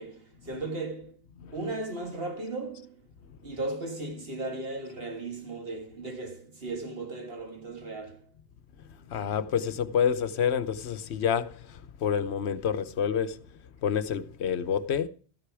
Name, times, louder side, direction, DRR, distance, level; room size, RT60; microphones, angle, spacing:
voice 1, 0.0-1.2 1.5-3.0 3.4-8.3, right 2 dB, 60° right, 2.2 m, -36 dB
voice 2, 1.4-1.7 3.3-3.4 9.0-13.5 13.8-15.1, left 7 dB, 80° left, 1.0 m, -29 dB
13.5 x 10.0 x 4.8 m
omnidirectional pair, 1.1 m